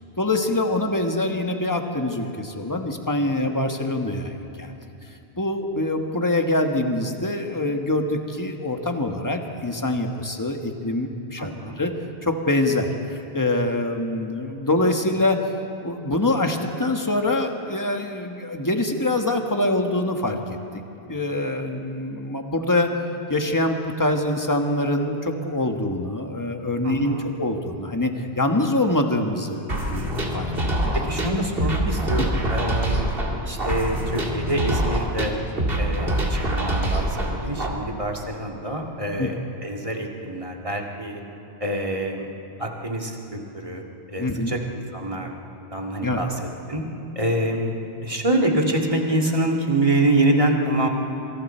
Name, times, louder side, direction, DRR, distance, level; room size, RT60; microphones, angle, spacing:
voice 1, 0.2-4.7 5.4-11.9 12.2-15.4 15.8-20.4 20.7-20.8 21.1-22.9 23.3-29.6 29.9-30.9 32.2-32.3 39.2-39.3 44.2-44.5 46.0-46.2, left 1 dB, 20° left, 3 dB, 1.5 m, -24 dB
voice 2, 26.8-27.3 31.0-33.1 33.4-35.4 35.8-41.2 41.6-42.3 42.6-43.8 44.1-45.4 45.7-46.8 47.2-47.7 48.0-50.9, right 1 dB, 30° right, 0 dB, 2.2 m, -25 dB
sound 1, 29.7-37.7, right 1 dB, 65° right, 2.5 m, -25 dB
27.0 x 25.0 x 4.5 m, 2.7 s
omnidirectional pair, 1.1 m